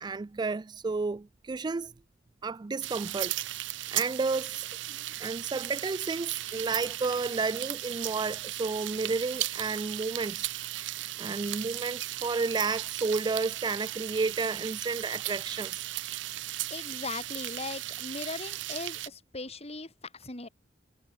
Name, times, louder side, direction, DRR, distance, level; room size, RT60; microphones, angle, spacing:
voice 1, 0.0-1.9 2.4-3.3 3.9-4.7 5.2-10.5 11.2-15.8, right 4 dB, 25° right, 0.3 m, -31 dB
sound 1, 2.8-19.1, right 15 dB, 90° right, 0.6 m, -36 dB
voice 2, 16.7-20.5, left 3 dB, 35° left, 5.2 m, -39 dB
head